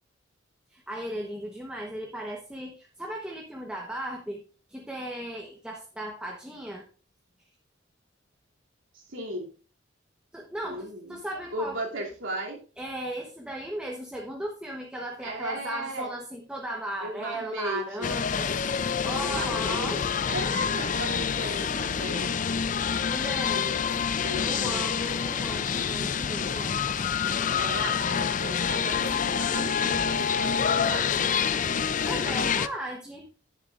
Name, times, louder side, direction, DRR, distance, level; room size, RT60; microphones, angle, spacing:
voice 1, 0.7-6.8 10.3-11.8 12.8-18.5 19.0-20.0 23.1-23.7 24.4-26.8 32.1-33.2, right 1 dB, 5° right, -1 dB, 1.1 m, -36 dB
voice 2, 8.9-9.5 10.6-11.2 11.5-12.6 15.2-16.1 17.0-18.1 19.2-22.4 23.5-24.9 27.6-31.3, right 1 dB, 85° right, -1 dB, 2.9 m, -36 dB
sound 1, 18.0-32.7, left 7 dB, 40° left, 0.4 m, -27 dB
sound 2, 24.6-32.8, right 3 dB, 45° right, 1.3 m, -51 dB
11.0 x 10.0 x 2.5 m, 0.37 s
head